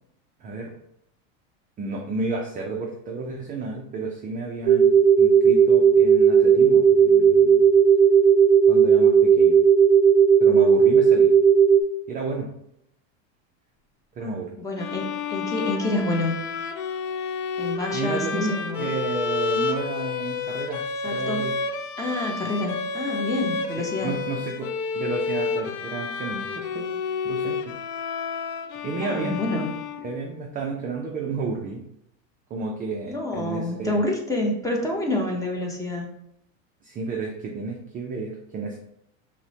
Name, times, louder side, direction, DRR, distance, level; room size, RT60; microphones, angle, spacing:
voice 1, 0.4-0.7 1.8-7.7 8.7-9.6 10.4-11.3 12.1-12.5 14.2-14.5 17.9-21.5 23.8-27.0 27.2-27.7 28.8-29.4 30.0-31.8 32.5-34.0 36.8-38.8, right 3 dB, 20° right, 0 dB, 0.3 m, -31 dB
sound 1, 4.7-11.8, right 7 dB, 70° right, 0.6 m, -15 dB
voice 2, 14.2-16.3 17.6-18.9 21.0-21.5 22.0-24.2 29.0-29.7 33.0-36.1, left 1 dB, 10° left, 0 dB, 0.7 m, -28 dB
sound 2, 14.8-30.4, left 5 dB, 50° left, 0.5 m, -30 dB
5.7 x 2.2 x 2.7 m, 0.76 s
supercardioid pair, 125°, 40 cm